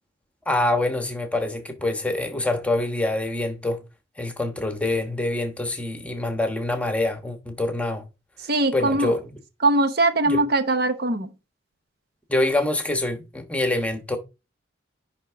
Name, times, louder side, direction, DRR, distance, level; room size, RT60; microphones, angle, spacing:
voice 1, 0.5-3.8 4.2-8.0 8.7-9.3 10.2-10.4 12.3-14.2, left 2 dB, 5° left, 1.1 m, -25 dB
voice 2, 8.5-9.1 9.6-11.3, right 2 dB, 50° right, 0.9 m, -21 dB
10.5 x 3.6 x 4.6 m
head